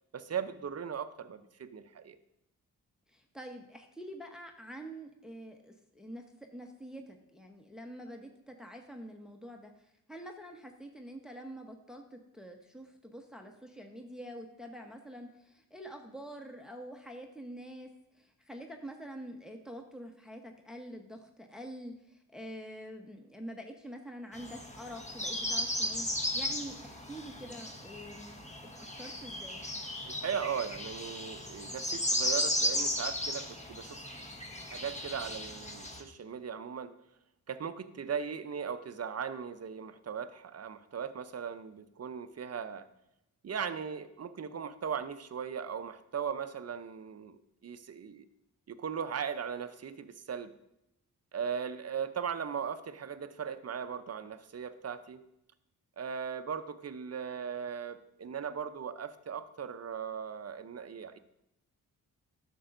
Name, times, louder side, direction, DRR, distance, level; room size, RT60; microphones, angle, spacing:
voice 1, 0.1-2.2 30.0-34.0 34.7-36.9 37.5-42.9 43.4-48.3 48.7-50.5 51.3-55.2 56.0-61.2, right 7 dB, 40° right, 12 dB, 0.6 m, -38 dB
voice 2, 3.1-6.2 6.5-28.5 28.7-29.6, equal, ahead, 3 dB, 1.0 m, -46 dB
sound 1, 24.3-36.0, left 1 dB, 20° left, 1.3 m, -35 dB
11.0 x 6.9 x 2.6 m, 0.86 s
supercardioid pair, 45°, 38 cm